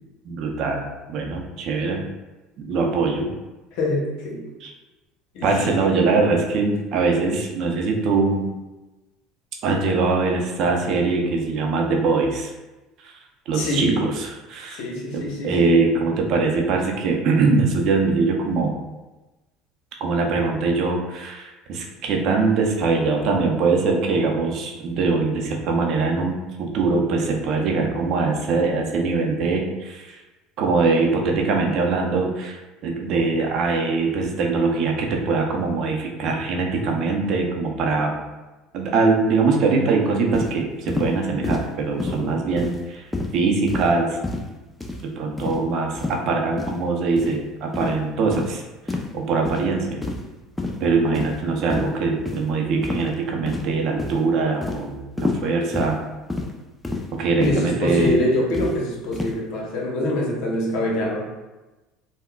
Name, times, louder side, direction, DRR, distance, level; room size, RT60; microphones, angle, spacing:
voice 1, 0.2-0.8 1.1-2.1 2.6-3.3 4.6-4.7 5.4-8.5 9.6-12.5 13.0-13.1 13.5-14.8 15.1-18.7 20.0-30.2 30.6-38.2 38.7-43.1 43.3-44.2 45.2-48.6 49.1-50.0 50.8-56.0 57.1-58.2, right 4 dB, 60° right, 1 dB, 0.5 m, -22 dB
voice 2, 3.8-4.4 5.3-5.5 13.5-14.0 14.8-15.8 42.0-42.4 57.4-61.3, left 1 dB, 70° left, -2 dB, 0.8 m, -25 dB
sound 1, 40.3-40.5 40.9-41.1 41.4-41.7 42.0-42.2 42.6-42.8 43.1-43.3 43.7-43.9 44.2-44.5 44.8-45.0 45.4-45.6 45.9-46.2 46.6-46.8 47.2-47.3 47.7-47.9 48.3-48.5 48.9-49.1 49.4-49.6 50.0-50.3 50.6-50.8 51.1-51.4 51.7-51.9 52.3-52.4 52.8-53.1 53.5-53.7 54.0-54.2 54.6-54.8 55.2-55.4 55.7-55.9 56.3-56.5 56.8-57.1 57.4-57.6 58.0-58.2 58.5-58.7 59.1-59.3, left 2 dB, 10° left, 0.4 m, -28 dB
3.5 x 2.1 x 2.3 m, 1.1 s
hypercardioid pair, 85°, 0 cm